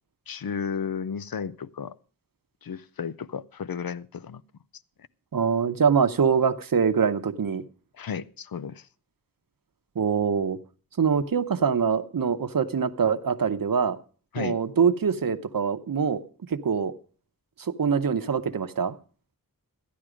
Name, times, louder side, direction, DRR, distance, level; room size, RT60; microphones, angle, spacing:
voice 1, 0.3-2.0 2.6-4.4 7.9-8.9 14.3-14.6, left 7 dB, 80° left, 0.6 m, -33 dB
voice 2, 5.3-7.6 10.0-10.6 11.0-14.0 14.4-16.2 16.5-16.9 17.6-19.0, right 6 dB, 70° right, 0.8 m, -24 dB
14.0 x 10.0 x 4.9 m
wide cardioid pair, 70°, 35 cm